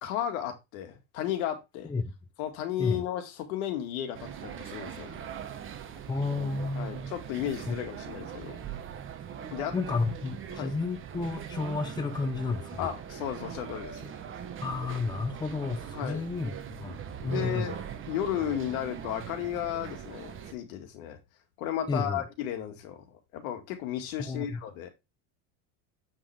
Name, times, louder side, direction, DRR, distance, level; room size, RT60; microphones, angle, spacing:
voice 1, 0.0-1.9 2.4-5.2 6.8-8.6 9.5-9.7 10.5-10.7 12.8-14.1 15.9-16.2 17.2-17.8 18.0-21.2 21.6-24.9, left 10 dB, 80° left, 1.9 m, -34 dB
sound 1, 4.1-20.5, right 8 dB, 30° right, 1.1 m, -41 dB
voice 2, 6.1-7.1 7.4-7.7 9.7-12.9 14.6-17.7 21.9-22.2 24.2-24.6, left 3 dB, 10° left, 0.9 m, -32 dB
7.6 x 5.4 x 3.3 m
cardioid pair, 140°, 42 cm